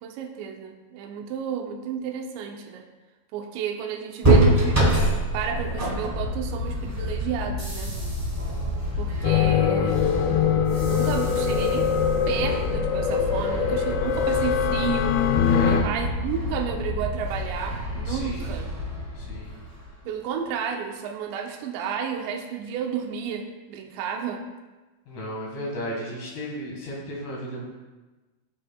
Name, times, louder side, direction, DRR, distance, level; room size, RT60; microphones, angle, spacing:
voice 1, 0.0-2.9 3.3-4.8 5.3-8.0 9.0-10.0 10.6-11.9 12.3-15.3 15.6-18.7 20.1-24.4, right 7 dB, 85° right, 2 dB, 3.0 m, -32 dB
sound 1, 4.2-19.9, right 1 dB, 60° right, 0.4 m, -27 dB
sound 2, 9.2-15.8, left 8 dB, 80° left, 2.8 m, -23 dB
voice 2, 15.5-15.9 18.1-18.5 19.2-19.5 25.1-27.7, equal, 65° left, -3 dB, 3.5 m, -34 dB
15.5 x 7.5 x 2.3 m, 1.2 s
omnidirectional pair, 5.0 m